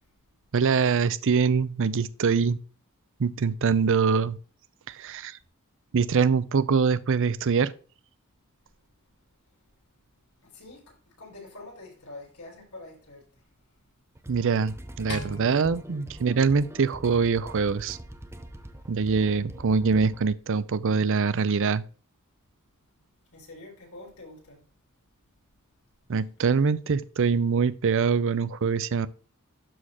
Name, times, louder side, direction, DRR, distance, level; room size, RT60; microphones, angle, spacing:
voice 1, 0.5-2.6 3.2-4.4 4.9-5.4 5.9-7.7 14.3-18.0 18.9-21.8 26.1-29.1, right 5 dB, 60° right, 0.5 m, -24 dB
voice 2, 10.4-13.4 18.5-18.7 23.3-24.6, left 2 dB, 80° left, 3.8 m, -46 dB
sound 1, 14.1-20.3, right 1 dB, 10° right, 0.7 m, -44 dB
sound 2, 15.1-17.5, left 4 dB, 50° left, 1.3 m, -42 dB
12.5 x 4.3 x 2.9 m
head